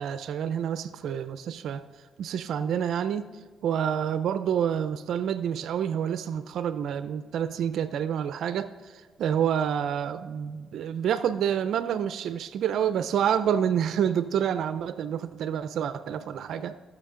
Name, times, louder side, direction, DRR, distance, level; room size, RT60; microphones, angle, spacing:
voice 1, 0.0-1.8 2.2-3.3 3.6-16.8, right 8 dB, 70° right, 12 dB, 0.5 m, -28 dB
19.0 x 6.4 x 3.8 m, 1.5 s
cardioid pair, 125°, 0 cm